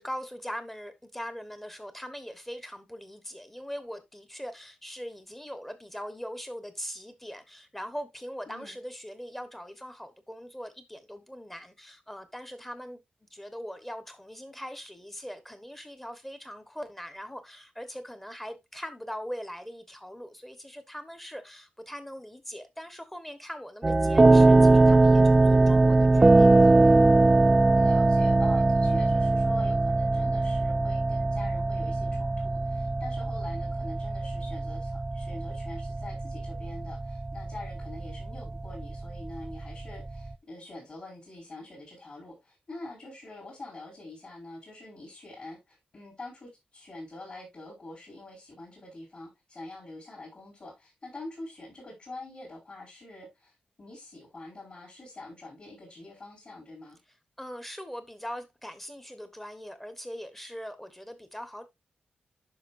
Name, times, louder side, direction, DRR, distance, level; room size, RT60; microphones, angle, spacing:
voice 1, 0.0-26.7 57.4-61.6, equal, 5° left, 1.3 m, -41 dB
voice 2, 8.5-8.8 26.8-27.1 27.7-57.0, left 2 dB, 40° left, 5.3 m, -45 dB
sound 1, 23.8-40.3, right 2 dB, 20° right, 0.4 m, -22 dB
10.0 x 5.9 x 2.6 m
wide cardioid pair, 140°, 3 cm